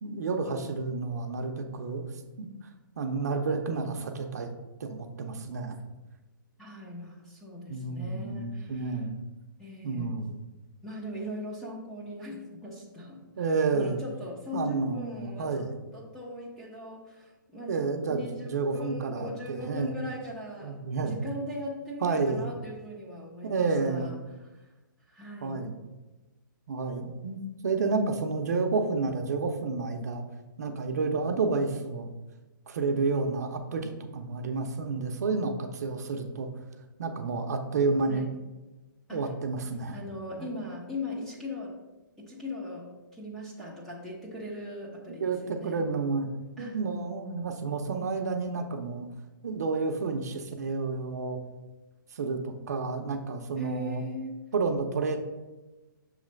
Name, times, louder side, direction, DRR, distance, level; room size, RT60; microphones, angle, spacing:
voice 1, 0.0-2.1 2.4-2.5 3.0-4.5 4.8-5.8 7.7-9.2 9.8-10.4 13.4-14.0 14.5-15.7 17.7-19.9 20.6-21.2 22.0-22.4 23.5-24.1 25.4-25.7 26.7-30.2 30.6-32.1 32.7-36.5 37.0-38.3 39.1-40.0 40.4-40.5 45.2-46.3 46.6-49.1 49.4-51.4 52.1-54.0 54.5-55.2, right 4 dB, 50° right, 5 dB, 0.6 m, -30 dB
voice 2, 6.6-9.0 9.6-10.1 10.8-13.2 13.7-15.7 15.9-17.8 18.1-24.1 25.1-25.6 38.1-38.3 39.1-39.3 39.9-41.8 42.2-45.8 46.6-46.8 53.6-54.4, left 1 dB, 5° left, -5 dB, 0.6 m, -39 dB
6.5 x 3.2 x 5.1 m, 1.1 s
hypercardioid pair, 170°, 11 cm